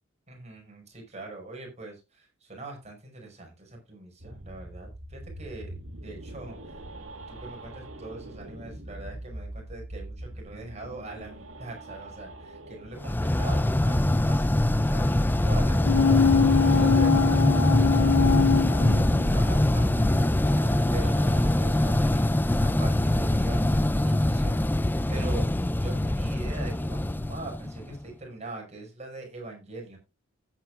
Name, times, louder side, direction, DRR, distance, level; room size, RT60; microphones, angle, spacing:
voice 1, 0.3-6.8 7.3-20.6 20.9-24.6 25.1-30.0, right 2 dB, 30° right, 1 dB, 5.9 m, -42 dB
sound 1, 4.2-23.8, right 1 dB, 65° right, 2.6 m, -42 dB
sound 2, 13.0-28.0, left 1 dB, 10° left, 0.5 m, -23 dB
sound 3, 15.8-19.6 19.9-20.0, left 6 dB, 75° left, 0.4 m, -23 dB
15.5 x 9.5 x 2.4 m, 0.27 s
head